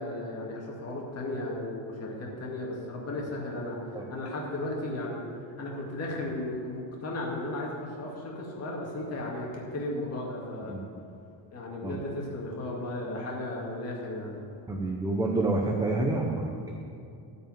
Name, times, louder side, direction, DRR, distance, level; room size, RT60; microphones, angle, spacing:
voice 1, 0.0-3.8 4.1-5.2 5.6-10.8 11.5-14.4, left 1 dB, 30° left, -2 dB, 2.1 m, -35 dB
voice 2, 14.7-16.7, right 2 dB, 10° right, 1 dB, 0.6 m, -28 dB
14.0 x 5.4 x 9.2 m, 2.5 s
cardioid pair, 175°, 46 cm